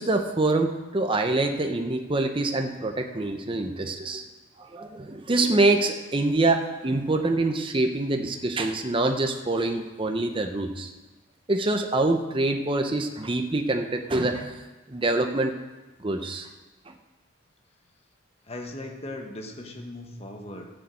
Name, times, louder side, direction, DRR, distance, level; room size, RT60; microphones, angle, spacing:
voice 1, 0.0-4.2 4.6-10.9 11.5-14.6 14.9-15.5 16.0-16.5, right 2 dB, 25° right, 5 dB, 0.7 m, -25 dB
voice 2, 18.4-20.7, left 1 dB, 30° left, 2 dB, 1.3 m, -38 dB
11.5 x 7.0 x 7.5 m, 1.1 s
head